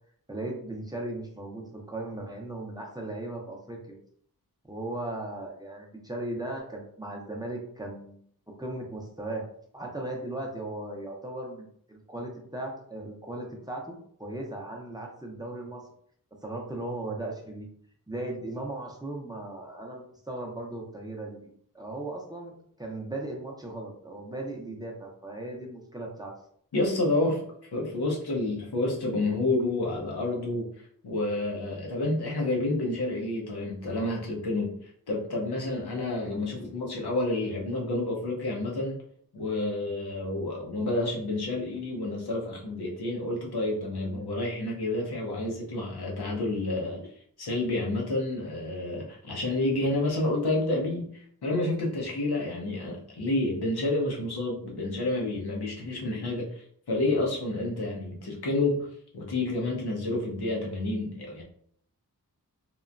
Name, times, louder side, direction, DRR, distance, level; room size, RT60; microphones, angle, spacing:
voice 1, 0.3-4.0 4.6-8.2 8.6-9.4 9.7-15.8 16.4-17.7 18.1-21.5 21.7-26.3, right 2 dB, 10° right, -1 dB, 0.5 m, -37 dB
voice 2, 26.7-27.4 27.7-30.7 31.0-39.0 39.3-47.1 47.4-58.9 59.1-61.4, left 2 dB, 90° left, -1 dB, 0.8 m, -29 dB
3.0 x 2.1 x 2.5 m, 0.63 s
wide cardioid pair, 70°, 38 cm